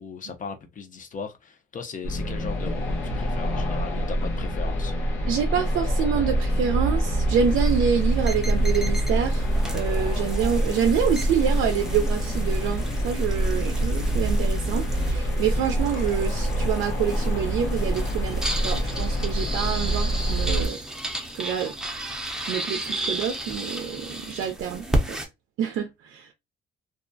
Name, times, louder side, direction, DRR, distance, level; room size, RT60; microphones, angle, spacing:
voice 1, 0.0-4.9, left 5 dB, 40° left, 0.6 m, -38 dB
sound 1, 2.0-20.7, right 1 dB, 85° left, 0.7 m, -25 dB
voice 2, 5.3-20.8 21.3-21.7 22.4-25.2 25.6-26.3, right 8 dB, 80° right, 0.4 m, -27 dB
sound 2, 7.3-25.3, right 1 dB, 5° right, 0.6 m, -34 dB
2.4 x 2.1 x 2.5 m
cardioid pair, 90°, 20 cm